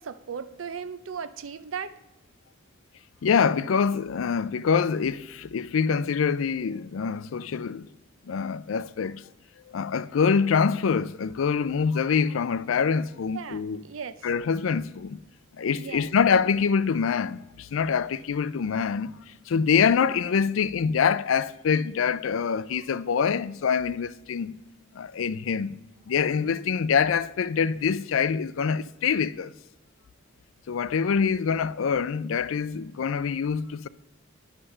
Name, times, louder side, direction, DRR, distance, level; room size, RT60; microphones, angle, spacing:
voice 1, 0.0-1.9 13.3-14.1 15.8-16.1, right 6 dB, 90° right, 0.6 m, -37 dB
voice 2, 3.2-7.9 8.3-9.2 9.7-13.8 14.2-15.2 15.6-19.1 19.5-24.5 25.0-25.7 26.1-29.5 30.7-33.9, left 6 dB, 85° left, 0.4 m, -25 dB
10.0 x 6.6 x 5.6 m
head